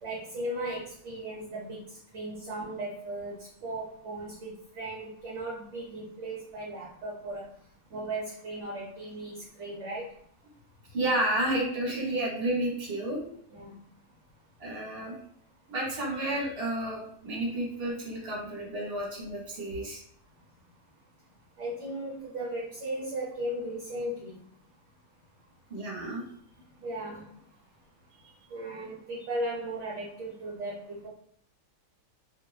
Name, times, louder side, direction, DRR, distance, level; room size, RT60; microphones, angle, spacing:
voice 1, 0.0-7.4 7.9-10.1 13.5-13.7 21.6-24.4 26.8-27.3 28.5-31.1, right 1 dB, 60° right, -4 dB, 1.0 m, -36 dB
voice 2, 10.9-13.2 14.6-15.2 15.7-20.0 25.7-26.2, right 1 dB, 45° right, -4 dB, 1.3 m, -31 dB
2.6 x 2.6 x 3.1 m, 0.63 s
omnidirectional pair, 1.5 m